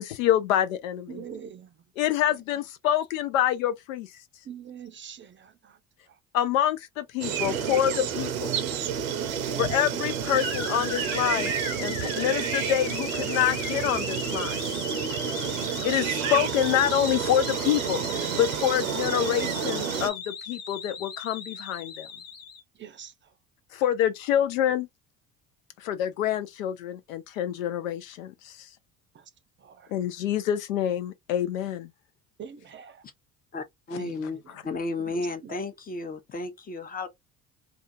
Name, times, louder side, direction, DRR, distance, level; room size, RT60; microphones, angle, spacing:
voice 1, 0.0-1.2 2.0-4.1 6.3-8.5 9.6-11.5 11.8-14.6 15.8-22.1 23.7-24.9 25.8-28.7 29.9-31.9, left 11 dB, 80° left, 0.5 m, -26 dB
voice 2, 1.1-1.9 2.2-2.4 4.4-5.8 6.1-6.2 7.6-7.9 9.4-9.9 12.2-12.7 22.7-23.3 29.1-29.3 29.6-29.9 32.4-33.1 34.0-34.6 35.0-35.6, right 7 dB, 30° right, 0.5 m, -44 dB
sound 1, 7.2-20.1, right 8 dB, 85° right, 0.6 m, -30 dB
sound 2, 10.3-22.6, left 5 dB, 55° left, 1.0 m, -38 dB
voice 3, 33.5-34.4 34.6-37.1, left 2 dB, 20° left, 0.7 m, -33 dB
2.4 x 2.3 x 2.5 m
hypercardioid pair, 60°, 39 cm